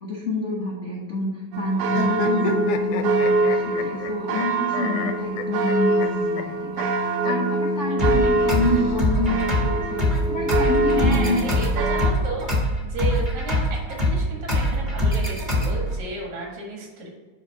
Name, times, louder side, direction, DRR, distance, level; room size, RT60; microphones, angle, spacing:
voice 1, 0.0-11.5, left 1 dB, 65° left, -4 dB, 0.7 m, -27 dB
sound 1, 1.5-12.1, right 2 dB, 90° right, 2.1 m, -24 dB
sound 2, 1.9-4.4 4.7-6.1 6.4-6.5 6.8-6.9 7.2-7.3 8.4-9.4, left 6 dB, 85° left, 2.0 m, -31 dB
sound 3, 8.0-16.0, left 1 dB, 55° right, 0.5 m, -24 dB
voice 2, 10.9-12.5 12.8-17.1, right 2 dB, 75° right, -1 dB, 3.1 m, -33 dB
9.3 x 3.2 x 4.8 m, 1.3 s
omnidirectional pair, 3.3 m